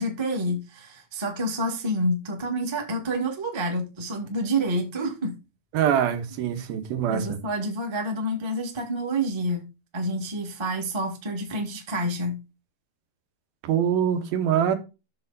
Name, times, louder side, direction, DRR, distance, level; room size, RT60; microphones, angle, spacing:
voice 1, 0.0-5.4 7.0-9.7 9.9-12.4, right 1 dB, 15° right, 1.0 m, -28 dB
voice 2, 5.7-7.4 13.6-14.8, right 9 dB, 85° right, 3.2 m, -24 dB
9.4 x 6.9 x 4.1 m
omnidirectional pair, 4.2 m